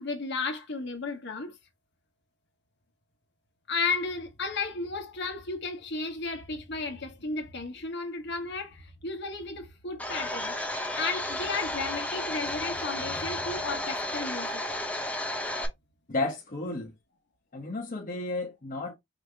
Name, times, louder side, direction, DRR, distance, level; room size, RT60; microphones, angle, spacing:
voice 1, 0.0-1.6 3.7-10.5 10.9-14.6, left 4 dB, 60° left, 1.2 m, -34 dB
Domestic sounds home sounds, 10.0-15.7, left 1 dB, 5° left, 0.9 m, -33 dB
voice 2, 16.1-16.9 17.5-18.9, left 2 dB, 40° left, 0.9 m, -32 dB
5.1 x 2.8 x 3.4 m
head